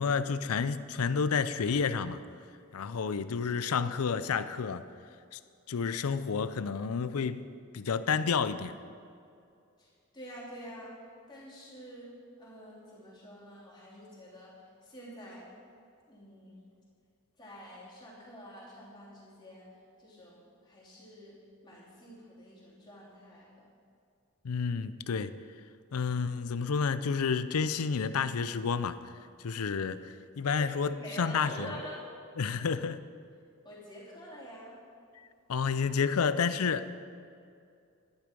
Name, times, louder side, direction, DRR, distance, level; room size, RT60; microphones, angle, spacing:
voice 1, 0.0-2.2 2.7-4.9 5.3-5.4 5.7-7.5 7.7-8.7 24.4-25.4 25.9-29.0 29.4-31.7 32.4-33.0 35.2-37.1, left 5 dB, 85° left, 13 dB, 0.5 m, -30 dB
voice 2, 9.8-10.9 11.3-12.1 12.4-14.5 14.8-15.4 16.1-16.7 17.4-19.7 20.0-21.4 21.6-23.7 30.6-32.0 33.6-34.8, equal, 20° left, -7 dB, 3.2 m, -47 dB
12.0 x 10.5 x 5.3 m, 2.4 s
head